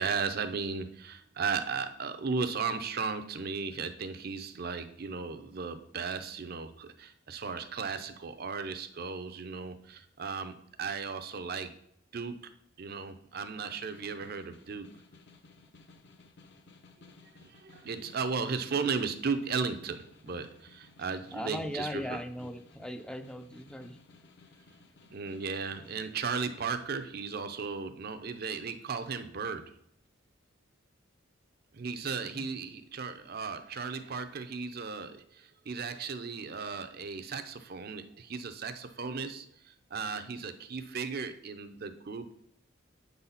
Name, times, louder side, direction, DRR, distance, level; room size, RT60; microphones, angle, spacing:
voice 1, 0.0-11.7 12.1-12.4 12.8-14.9 17.0-17.1 17.4-21.9 25.1-29.7 31.7-42.4, right 5 dB, 45° right, 10 dB, 0.5 m, -36 dB
Snare drum, 13.4-26.1, left 3 dB, 55° left, 0.7 m, -58 dB
voice 2, 21.0-24.0 32.0-32.5, equal, 5° left, 8 dB, 0.3 m, -39 dB
7.6 x 4.1 x 5.6 m, 0.72 s
head